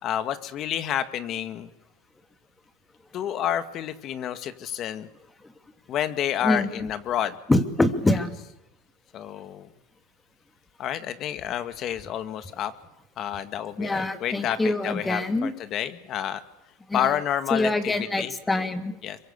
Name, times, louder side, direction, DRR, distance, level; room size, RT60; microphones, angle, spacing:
voice 1, 0.0-1.7 3.1-5.1 5.9-7.4 9.1-9.7 10.8-12.7 13.2-16.4 16.9-17.9 18.2-18.3 19.0-19.2, left 10 dB, 45° left, 10 dB, 2.1 m, -29 dB
voice 2, 6.4-6.9 7.5-8.4 13.8-15.5 16.9-17.2 17.5-18.9, left 2 dB, 10° left, 8 dB, 2.7 m, -25 dB
26.5 x 23.5 x 8.4 m, 0.85 s
supercardioid pair, 105°, 0 cm